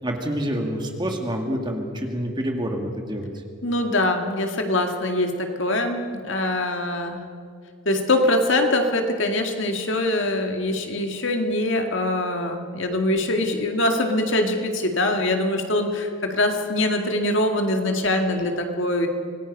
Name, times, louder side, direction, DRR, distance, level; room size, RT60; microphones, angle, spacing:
voice 1, 0.0-3.3, equal, 20° right, 2 dB, 2.1 m, -27 dB
voice 2, 3.6-7.2 7.9-19.1, left 1 dB, 60° left, 4 dB, 2.1 m, -23 dB
26.0 x 19.0 x 5.5 m, 2.2 s
head